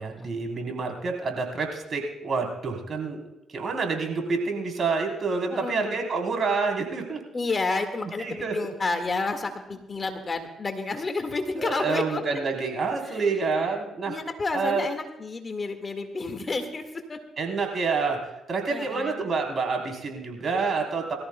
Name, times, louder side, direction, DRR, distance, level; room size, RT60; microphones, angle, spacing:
voice 1, 0.0-3.2 3.5-7.2 8.0-8.7 11.6-14.1 14.5-14.8 17.4-21.2, right 4 dB, 50° right, 2 dB, 3.6 m, -28 dB
voice 2, 5.5-5.9 7.3-12.2 13.0-13.7 14.1-17.2 18.7-19.3, left 3 dB, 35° left, 6 dB, 1.8 m, -30 dB
22.0 x 14.0 x 2.3 m, 0.91 s
hypercardioid pair, 45°, 0 cm